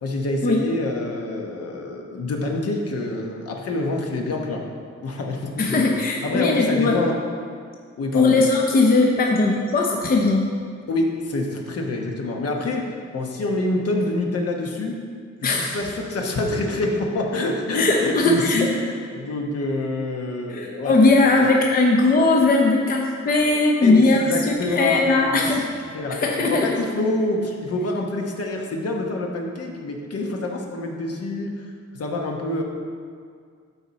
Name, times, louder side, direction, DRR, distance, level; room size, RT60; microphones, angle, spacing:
voice 1, 0.0-4.6 5.0-7.1 8.0-8.3 10.9-15.0 15.4-21.1 23.8-25.1 25.4-25.5 25.9-32.6, left 2 dB, 55° left, 1 dB, 1.1 m, -26 dB
voice 2, 5.6-7.0 8.1-10.5 15.4-15.8 17.7-18.7 20.5-25.6 26.1-26.8, left 3 dB, 30° left, 0 dB, 0.7 m, -19 dB
12.5 x 4.3 x 4.1 m, 2.1 s
wide cardioid pair, 140°, 29 cm